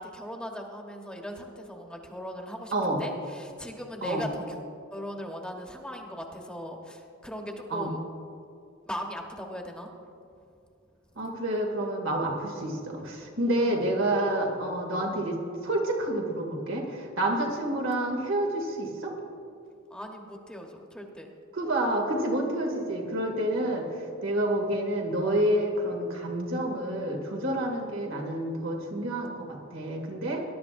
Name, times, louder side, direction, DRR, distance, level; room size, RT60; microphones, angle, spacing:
voice 1, 0.0-4.6 4.9-8.0 8.8-10.1 13.2-13.8 17.5-17.6 19.9-21.3 23.5-23.7 27.8-27.9, equal, 5° left, 1 dB, 1.1 m, -39 dB
voice 2, 2.7-3.0 4.0-4.2 7.7-7.9 11.2-19.1 21.5-30.4, right 1 dB, 90° right, 0 dB, 2.4 m, -29 dB
20.5 x 11.0 x 2.6 m, 2.6 s
head